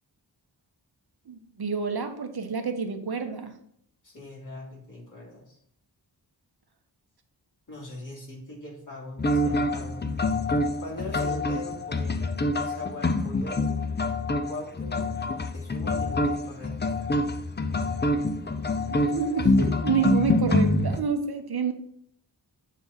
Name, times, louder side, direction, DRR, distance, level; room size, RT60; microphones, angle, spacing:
voice 1, 1.3-3.5 19.1-21.7, right 6 dB, 60° right, 6 dB, 0.9 m, -28 dB
voice 2, 4.0-5.6 7.7-10.0 10.8-13.9 14.5-17.0, left 1 dB, 45° left, -5 dB, 3.1 m, -41 dB
sound 1, 9.2-21.0, left 2 dB, 25° left, 0.5 m, -26 dB
7.5 x 3.4 x 5.7 m, 0.68 s
wide cardioid pair, 95°, 43 cm